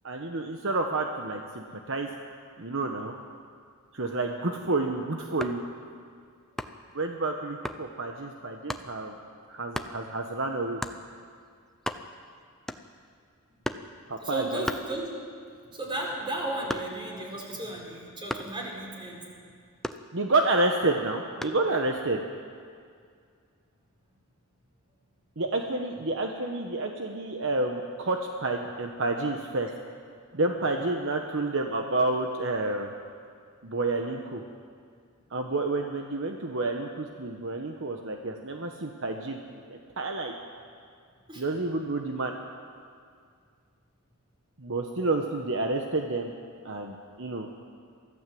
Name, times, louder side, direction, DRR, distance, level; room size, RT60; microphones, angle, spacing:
voice 1, 0.0-2.1 2.6-3.1 3.9-5.6 6.9-9.2 9.5-10.8 14.1-14.7 20.1-22.2 25.4-29.7 30.3-32.9 33.6-34.4 35.3-39.4 39.7-40.3 41.4-42.3 44.6-46.3 46.6-47.5, right 2 dB, 60° right, 3 dB, 1.2 m, -29 dB
sound 1, 5.4-5.7 6.6-6.9 7.6-7.9 8.7-8.9 9.7-10.0 10.8-11.0 11.5-11.6 11.7-12.3 12.7-13.1 13.6-14.0 14.6-15.4 15.8-17.2 18.3-18.6 19.8-20.5 21.4-21.7, equal, ahead, 0.6 m, -35 dB
voice 2, 14.2-15.1 15.5-19.3 41.3-41.5, right 1 dB, 20° right, -1 dB, 4.3 m, -34 dB
23.5 x 14.5 x 7.8 m, 2.2 s
head